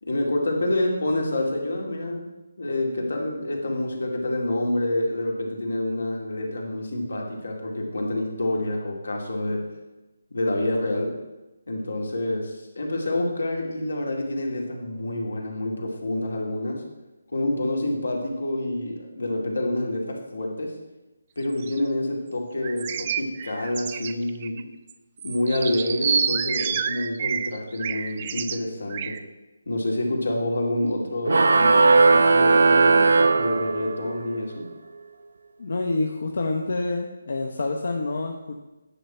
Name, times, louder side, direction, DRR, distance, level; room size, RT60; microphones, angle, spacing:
voice 1, 0.0-2.3 2.6-9.7 10.3-11.2 11.7-16.8 17.3-20.7 21.4-24.6 25.2-29.2 29.7-34.7, left 1 dB, 85° left, 0 dB, 2.3 m, -27 dB
sound 1, 21.4-21.8 22.6-24.6 24.9-25.0 25.2-28.6 28.9-29.2, right 7 dB, 30° right, 0.4 m, -29 dB
sound 2, 31.3-34.2, right 3 dB, 75° right, 0.6 m, -17 dB
voice 2, 35.6-38.5, left 2 dB, 60° left, 1 dB, 0.8 m, -27 dB
9.9 x 6.0 x 4.3 m, 1.1 s
hypercardioid pair, 165°, 0 cm